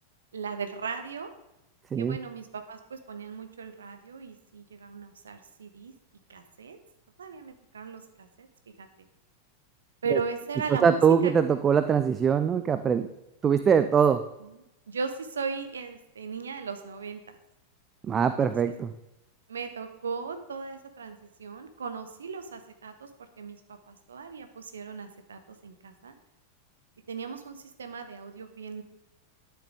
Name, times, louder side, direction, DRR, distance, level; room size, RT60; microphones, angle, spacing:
voice 1, 0.3-1.3 2.0-5.9 6.3-6.8 7.2-8.5 8.8-8.9 10.0-11.6 14.4-17.4 18.2-18.7 19.5-23.1 23.4-26.1 27.1-28.8, right 5 dB, 70° right, 8 dB, 1.0 m, -37 dB
voice 2, 10.8-13.1 13.4-14.2 18.1-18.9, right 7 dB, 25° right, 11 dB, 0.4 m, -22 dB
11.5 x 6.4 x 3.6 m, 0.91 s
figure-of-eight pair, 90°, 0 cm